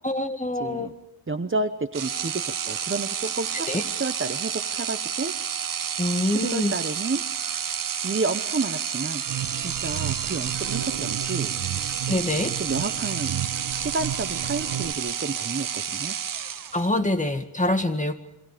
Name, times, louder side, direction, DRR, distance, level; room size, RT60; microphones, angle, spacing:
voice 1, 0.0-0.9 3.7-3.8 6.0-6.7 12.1-12.5 16.7-18.2, left 1 dB, 15° left, 7 dB, 2.0 m, -25 dB
voice 2, 0.5-0.9 1.3-5.3 6.2-7.2 8.0-9.2 9.6-11.5 12.6-13.4 13.7-16.1, right 3 dB, 30° right, 9 dB, 1.0 m, -30 dB
sound 1, 1.9-17.0, right 8 dB, 50° right, 0.7 m, -30 dB
sound 2, 9.3-14.9, right 11 dB, 75° right, 1.2 m, -33 dB
27.5 x 24.5 x 5.1 m, 0.86 s
wide cardioid pair, 90°, 42 cm